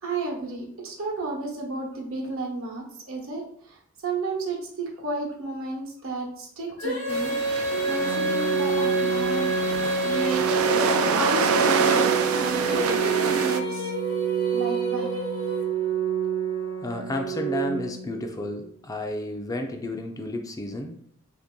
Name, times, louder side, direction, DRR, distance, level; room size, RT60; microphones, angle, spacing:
voice 1, 0.0-7.4 7.8-9.5 10.0-10.5 11.1-13.9 14.5-15.1, right 3 dB, 70° right, -1 dB, 0.9 m, -32 dB
Female singing, 6.8-15.9, right 1 dB, 80° left, 0.8 m, -29 dB
sound 1, 7.1-13.6, right 5 dB, 90° right, 0.4 m, -27 dB
Organ, 7.7-18.7, right 8 dB, 30° right, 0.5 m, -29 dB
voice 2, 16.8-21.0, left 1 dB, 15° left, 4 dB, 0.3 m, -32 dB
3.0 x 2.7 x 3.6 m, 0.65 s
head